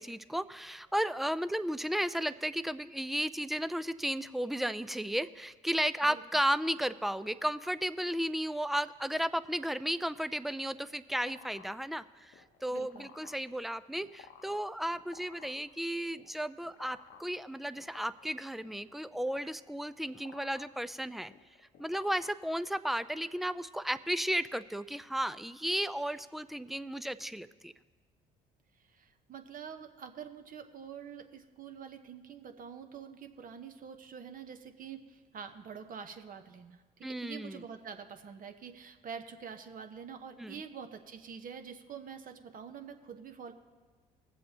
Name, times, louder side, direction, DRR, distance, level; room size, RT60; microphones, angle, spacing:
voice 1, 0.0-21.3 21.8-27.7 37.0-37.6 40.4-40.6, equal, ahead, 14 dB, 0.4 m, -34 dB
sound 1, 10.6-23.0, left 7 dB, 65° left, 0.9 m, -57 dB
voice 2, 12.7-13.1 28.9-36.8 37.1-43.5, right 7 dB, 50° right, 7 dB, 1.0 m, -46 dB
21.0 x 7.6 x 2.8 m, 1.5 s
supercardioid pair, 70°, 18 cm